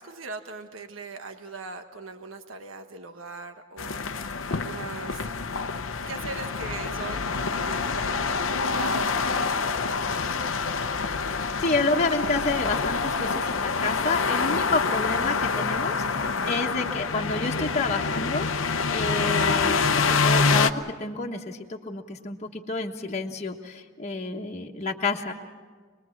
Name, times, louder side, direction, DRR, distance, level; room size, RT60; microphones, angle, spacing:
voice 1, 0.0-5.3 6.1-9.7, right 4 dB, 90° right, 7 dB, 1.3 m, -40 dB
sound 1, 3.8-20.7, left 4 dB, 75° left, 0.8 m, -26 dB
voice 2, 11.6-25.3, left 3 dB, 35° left, 0 dB, 1.3 m, -29 dB
25.5 x 20.5 x 7.3 m, 1.5 s
head